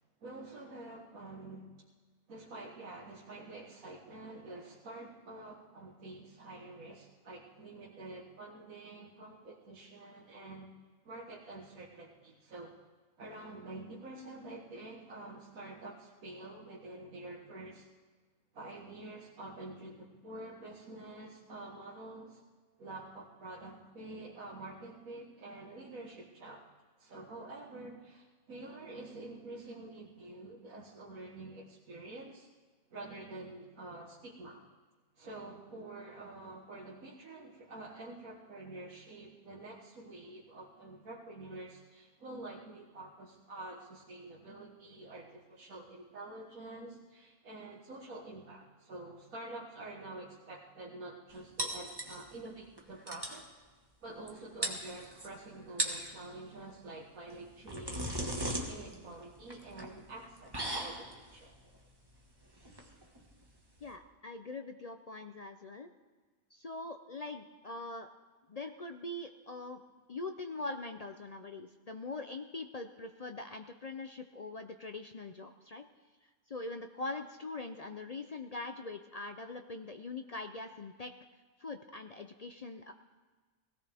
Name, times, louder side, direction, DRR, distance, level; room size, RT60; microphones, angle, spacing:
voice 1, 0.2-1.7 2.3-10.7 11.0-12.8 13.2-17.9 18.5-22.4 22.8-26.6 27.0-32.5 32.9-34.6 35.2-53.5 54.0-61.5, right 2 dB, 80° right, -5 dB, 2.0 m, -48 dB
sound 1, 51.6-52.5 52.8-52.9 53.1-53.4 54.3-54.4 54.6-55.3 55.7-56.1 57.3-63.9, right 1 dB, 15° right, 1.4 m, -38 dB
voice 2, 63.8-65.9 66.5-68.1 68.5-69.8 70.1-75.8 76.5-81.1 81.6-82.9, left 2 dB, 55° left, 6 dB, 0.4 m, -42 dB
18.5 x 17.0 x 3.5 m, 1.3 s
omnidirectional pair, 1.4 m